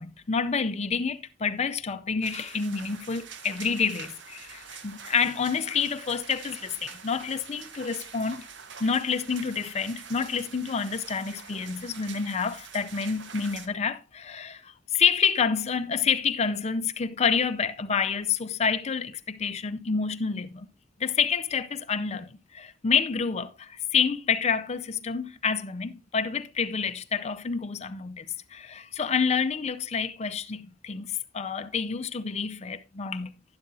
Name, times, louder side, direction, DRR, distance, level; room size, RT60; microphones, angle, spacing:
voice 1, 0.0-8.4 8.8-14.6 14.9-20.7 21.0-23.5 23.9-28.3 28.5-30.6 30.8-31.1 31.3-33.3, left 6 dB, 35° left, 0.5 m, -28 dB
sound 1, 2.2-13.7, right 6 dB, 65° right, 1.0 m, -45 dB
11.5 x 10.5 x 2.7 m
head